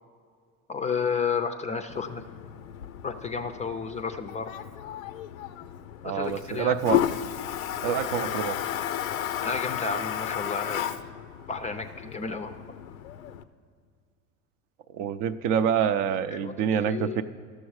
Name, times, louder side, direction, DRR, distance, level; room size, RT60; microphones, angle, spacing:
voice 1, 0.7-2.3 3.0-4.5 6.0-6.8 9.4-11.0 11.5-12.5 16.3-17.2, left 5 dB, 20° left, 8 dB, 0.4 m, -32 dB
Toilet flush, 1.9-13.4, left 11 dB, 90° left, 0.5 m, -33 dB
voice 2, 6.0-7.0 7.8-8.6 14.9-17.2, right 8 dB, 50° right, 12 dB, 0.5 m, -26 dB
12.5 x 6.5 x 4.7 m, 2.1 s
hypercardioid pair, 90°, 40 cm